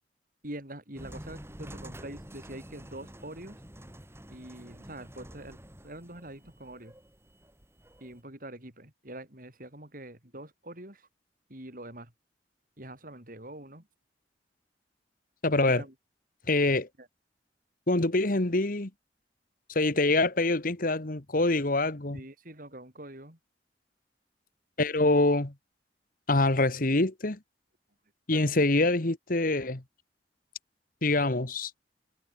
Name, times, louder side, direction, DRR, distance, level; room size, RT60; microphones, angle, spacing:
voice 1, 0.4-3.6 4.3-5.6 5.8-7.0 8.0-11.1 11.5-12.1 12.8-13.9 15.7-15.9 17.0-17.1 22.1-23.4 28.3-28.4, right 1 dB, 50° right, 7.1 m, -44 dB
sound 1, 1.0-8.2, equal, 15° right, 5.3 m, -48 dB
voice 2, 15.4-15.8 16.5-16.9 17.9-18.9 19.7-22.2 24.8-25.5 26.3-27.4 28.3-29.8 31.0-31.7, left 2 dB, 55° left, 1.7 m, -25 dB
head